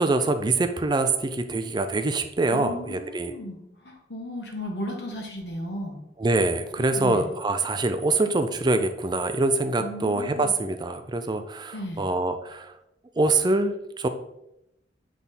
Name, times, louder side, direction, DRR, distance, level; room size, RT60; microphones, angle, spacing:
voice 1, 0.0-3.3 6.2-12.7 13.2-14.1, right 2 dB, 25° right, 8 dB, 0.4 m, -24 dB
voice 2, 2.5-6.0 6.8-7.2 9.8-10.5 11.7-12.1, left 1 dB, 70° left, 1 dB, 1.5 m, -35 dB
7.6 x 3.5 x 4.1 m, 0.83 s
head